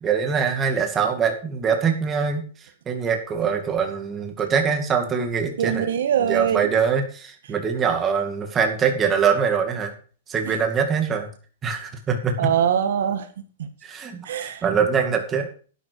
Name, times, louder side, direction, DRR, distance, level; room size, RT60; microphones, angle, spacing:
voice 1, 0.0-5.9 6.2-9.9 10.3-11.3 11.6-12.5 13.8-15.5, right 6 dB, 15° right, 2.3 m, -23 dB
voice 2, 5.6-6.7 12.4-13.3 13.6-13.7 14.3-14.6, right 9 dB, 70° right, 1.7 m, -22 dB
12.0 x 10.5 x 4.8 m
hypercardioid pair, 160°, 0 cm